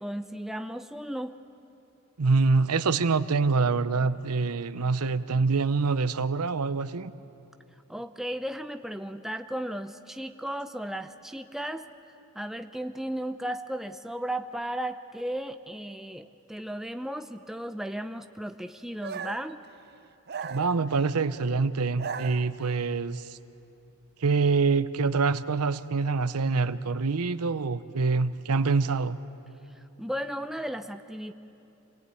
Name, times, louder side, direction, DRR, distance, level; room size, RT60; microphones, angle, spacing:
voice 1, 0.0-1.4 7.9-11.9 12.3-19.6 29.8-31.3, right 1 dB, ahead, 8 dB, 0.5 m, -35 dB
voice 2, 2.2-7.1 20.4-23.4 24.2-29.2, right 4 dB, 90° right, 14 dB, 0.7 m, -25 dB
sound 1, 19.0-19.5 20.3-21.2 21.8-22.9, right 6 dB, 45° right, 0.6 m, -38 dB
26.0 x 18.5 x 9.1 m, 2.8 s
head